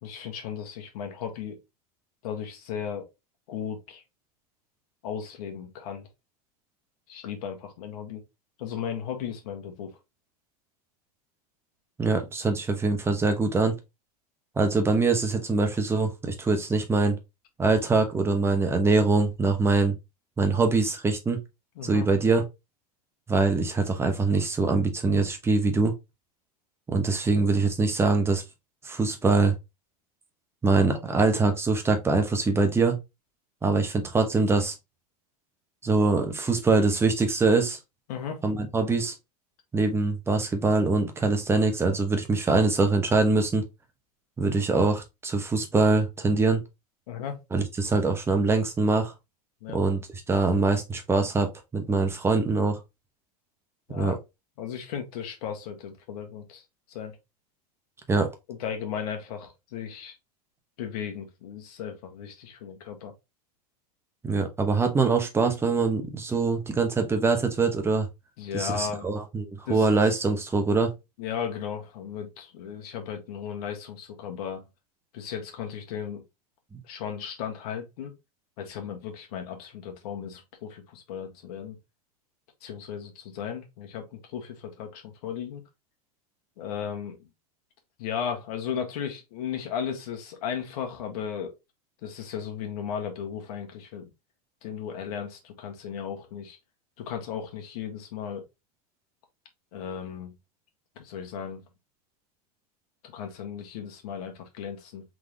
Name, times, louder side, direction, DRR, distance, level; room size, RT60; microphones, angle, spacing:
voice 1, 0.0-1.6 2.2-3.1 3.5-4.0 5.0-6.1 7.1-8.2 8.6-10.0 21.8-22.1 38.1-38.4 47.1-47.4 49.6-49.8 53.9-54.2 54.6-56.6 56.9-57.1 58.5-60.1 60.8-63.1 68.4-69.1 69.7-70.0 71.2-74.7 75.1-76.2 76.9-78.1 78.6-81.8 82.6-85.6 86.6-87.2 88.0-91.5 92.0-94.1 94.6-96.6 97.0-98.5 99.7-100.3 100.9-101.6 103.1-105.0, left 8 dB, 65° left, 1.6 m, -35 dB
voice 2, 12.0-13.8 14.6-17.2 17.6-19.9 20.4-21.4 21.8-22.4 23.3-25.9 26.9-28.4 28.8-29.5 30.6-33.0 33.6-34.7 35.8-37.8 38.4-39.1 39.7-43.6 44.4-46.6 47.5-49.1 49.7-50.0 50.3-52.8 54.0-54.2 58.1-58.3 64.2-68.1 68.5-70.9 76.7-76.8, right 3 dB, 10° right, 0.9 m, -23 dB
3.9 x 3.5 x 3.2 m
supercardioid pair, 130°, 21 cm